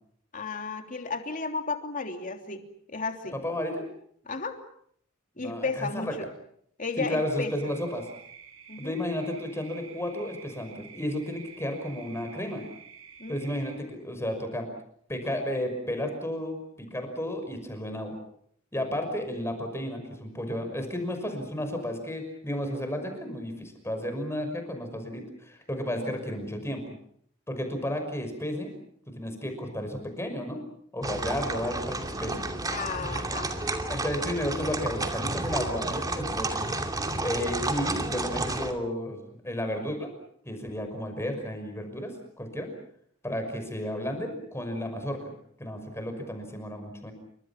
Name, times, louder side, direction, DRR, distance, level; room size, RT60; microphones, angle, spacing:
voice 1, 0.3-3.4 4.3-4.6 5.4-6.3 6.8-7.5 8.7-9.0 13.2-13.9 26.0-26.2 32.7-33.5, left 4 dB, 40° left, 5 dB, 3.1 m, -34 dB
voice 2, 3.3-3.9 5.4-6.1 7.0-8.1 8.8-12.6 13.3-14.7 15.1-18.2 18.7-26.9 27.5-28.7 29.1-30.6 30.9-32.4 33.9-36.7 37.2-40.1 40.5-42.7 43.2-45.2 45.6-47.1, left 1 dB, 15° left, 6 dB, 5.9 m, -33 dB
sound 1, 7.1-13.8, right 7 dB, 75° right, 7.9 m, -50 dB
sound 2, 31.0-38.7, right 2 dB, 20° right, 2.6 m, -31 dB
29.0 x 25.5 x 5.9 m, 0.65 s
head